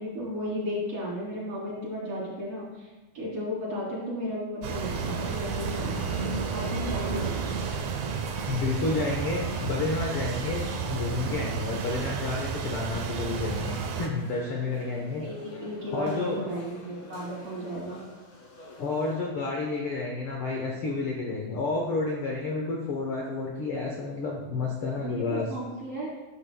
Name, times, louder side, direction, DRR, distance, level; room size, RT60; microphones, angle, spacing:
voice 1, 0.0-2.9 3.1-6.0 6.5-7.4 15.2-18.0 25.0-26.1, equal, 45° right, -6 dB, 4.1 m, -34 dB
sound 1, 4.6-14.1, right 6 dB, 70° right, 2.0 m, -31 dB
sound 2, 6.9-19.1, left 2 dB, 90° left, 4.2 m, -49 dB
voice 2, 8.5-15.2 15.9-16.4 18.8-25.5, left 3 dB, 70° left, -1 dB, 1.3 m, -30 dB
12.5 x 10.5 x 2.3 m, 1.2 s
omnidirectional pair, 4.1 m